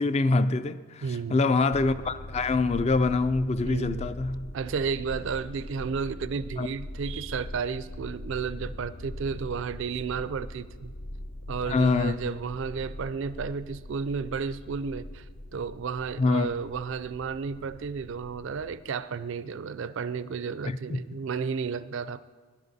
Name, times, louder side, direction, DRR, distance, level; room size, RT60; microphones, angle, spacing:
voice 1, 0.0-1.0 1.3-4.5 6.6-6.7 11.7-12.4 16.2-16.5 20.6-21.0, left 3 dB, 30° left, 0.3 m, -25 dB
voice 2, 1.0-1.6 3.6-4.1 4.5-10.9 11.5-15.3 15.5-22.2, right 5 dB, 55° right, 0.4 m, -32 dB
sound 1, 1.7-18.8, left 1 dB, 60° left, 0.8 m, -41 dB
16.5 x 11.0 x 4.1 m
head